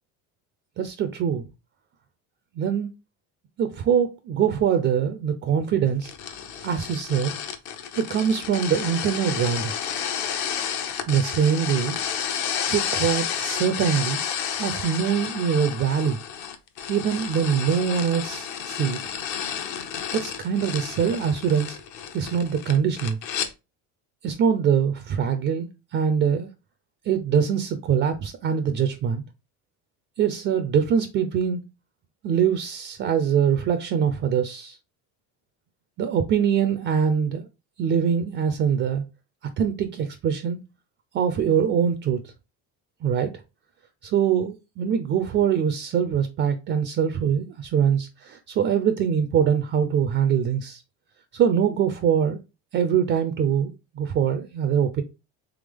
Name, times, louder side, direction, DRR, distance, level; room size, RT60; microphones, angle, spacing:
voice 1, 0.8-1.5 2.6-2.9 3.6-6.1 6.6-7.3 7.9-9.7 11.1-12.0 12.7-14.2 14.6-16.2 16.9-19.0 20.1-21.8 22.1-23.2 24.2-26.5 27.1-29.2 30.2-31.6 32.2-34.8 36.0-37.5 37.8-39.0 39.6-40.6 41.1-42.3 43.0-43.3 44.0-50.8 51.3-52.4 52.7-55.0, right 8 dB, 35° right, 0.4 m, -23 dB
sound 1, 6.0-23.5, left 8 dB, 55° left, 0.7 m, -31 dB
3.4 x 3.4 x 3.4 m
cardioid pair, 140°, 36 cm